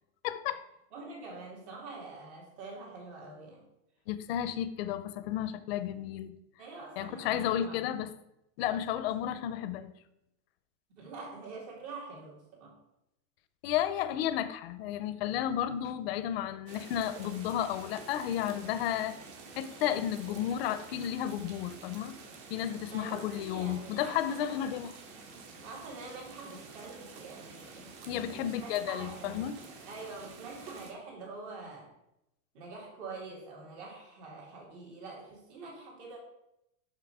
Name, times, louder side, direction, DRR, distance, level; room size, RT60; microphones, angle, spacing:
voice 1, 0.2-0.6 4.1-6.4 7.0-8.1 8.6-9.9 13.6-19.1 19.6-22.2 22.5-24.9 28.1-29.5, left 10 dB, 45° left, 13 dB, 0.5 m, -32 dB
voice 2, 0.9-3.6 6.6-8.0 11.0-12.7 22.9-24.5 25.6-29.4 29.9-31.9 32.5-36.2, right 3 dB, 55° right, -1 dB, 2.7 m, -45 dB
sound 1, 16.7-30.9, right 4 dB, 40° right, 1.1 m, -49 dB
6.0 x 5.9 x 4.7 m, 0.85 s
supercardioid pair, 165°, 42 cm